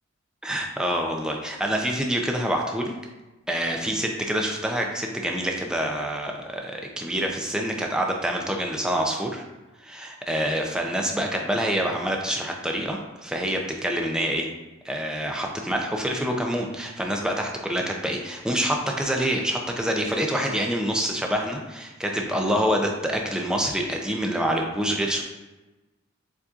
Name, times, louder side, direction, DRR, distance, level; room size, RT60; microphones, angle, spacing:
voice 1, 0.4-2.9 3.5-9.4 9.8-14.5 14.8-25.2, equal, 5° right, 1 dB, 0.5 m, -26 dB
7.0 x 2.6 x 2.4 m, 1.1 s
head